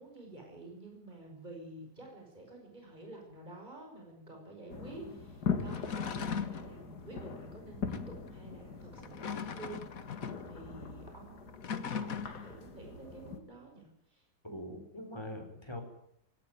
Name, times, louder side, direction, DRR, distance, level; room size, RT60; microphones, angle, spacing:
voice 1, 0.0-9.8 10.5-14.2, right 2 dB, 30° right, 1 dB, 6.1 m, -50 dB
sound 1, 4.7-13.4, left 6 dB, 80° left, 2.6 m, -41 dB
sound 2, 5.6-6.7 7.9-8.1 8.9-10.5 11.5-12.6, left 6 dB, 60° left, 1.7 m, -39 dB
voice 2, 14.4-15.8, left 1 dB, 15° left, 4 dB, 4.5 m, -42 dB
18.5 x 17.5 x 9.5 m, 0.74 s
omnidirectional pair, 1.7 m